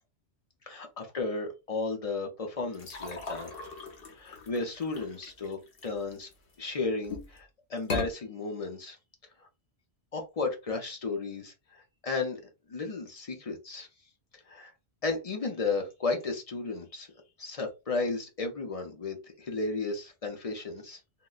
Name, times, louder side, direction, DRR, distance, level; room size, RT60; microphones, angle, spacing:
voice 1, 0.7-3.5 4.1-6.3 6.6-9.0 9.4-9.5 10.1-12.4 12.7-13.9 14.3-14.7 15.0-17.1 17.4-21.0, left 3 dB, 40° left, 3 dB, 0.6 m, -34 dB
sound 1, 2.7-6.5 7.0-7.4 7.8-8.1, left 3 dB, 60° left, 0.9 m, -39 dB
3.8 x 2.1 x 2.3 m, 0.27 s
omnidirectional pair, 1.1 m